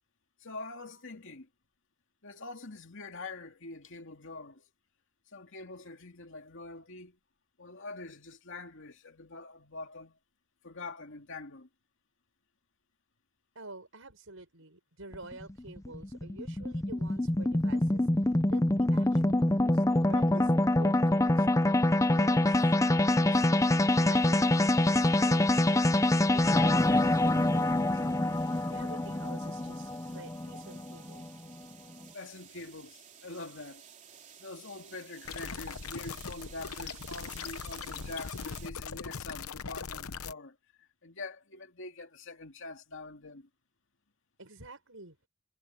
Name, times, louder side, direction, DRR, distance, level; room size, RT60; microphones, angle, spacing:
voice 1, 0.4-1.5 2.2-4.6 5.3-7.2 7.6-10.2 10.6-11.7 32.1-33.8 34.4-43.5, left 3 dB, 60° left, 2.5 m, -45 dB
voice 2, 13.6-21.5 22.0-25.8 26.1-28.3 28.7-31.4 44.4-45.2, right 2 dB, 65° right, 7.1 m, -49 dB
sound 1, 15.1-31.5, left 1 dB, 15° left, 0.6 m, -26 dB
sound 2, 26.8-38.7, right 8 dB, 35° right, 3.3 m, -54 dB
sound 3, 35.2-40.3, left 6 dB, 80° left, 0.9 m, -40 dB
head